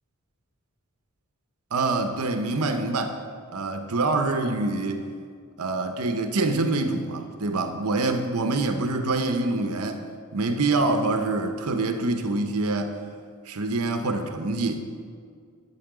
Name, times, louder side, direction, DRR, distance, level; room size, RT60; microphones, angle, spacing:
voice 1, 1.7-3.1 3.5-5.0 5.6-10.0 10.3-13.0 13.5-14.8, right 2 dB, 85° right, 6 dB, 0.8 m, -25 dB
12.0 x 7.2 x 4.8 m, 2.1 s
head